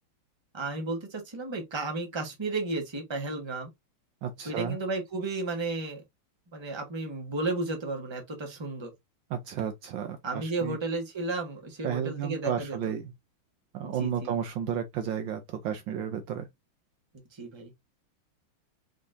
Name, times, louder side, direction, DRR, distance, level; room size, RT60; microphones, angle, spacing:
voice 1, 0.5-3.7 4.4-6.0 6.5-8.9 10.2-12.8 13.8-14.3 17.3-17.7, right 3 dB, 15° right, 1.2 m, -33 dB
voice 2, 4.2-4.8 9.3-10.8 11.8-13.1 13.7-16.5, right 8 dB, 70° right, 1.3 m, -32 dB
5.6 x 3.7 x 2.6 m
omnidirectional pair, 2.3 m